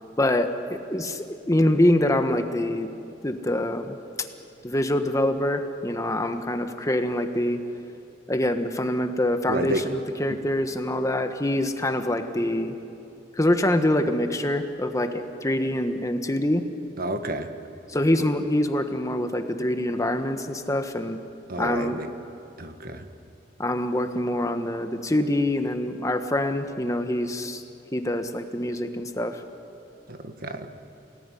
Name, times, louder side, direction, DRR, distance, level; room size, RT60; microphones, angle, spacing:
voice 1, 0.2-2.9 3.2-4.0 4.6-7.6 8.3-12.7 13.3-16.6 17.9-21.2 21.6-22.0 23.6-27.6 27.9-29.4, left 1 dB, 20° left, 7 dB, 1.3 m, -25 dB
voice 2, 9.5-9.9 17.0-17.5 21.5-22.1 22.6-23.1 30.1-30.7, right 1 dB, 55° right, 7 dB, 1.5 m, -30 dB
28.5 x 18.5 x 10.0 m, 2.7 s
head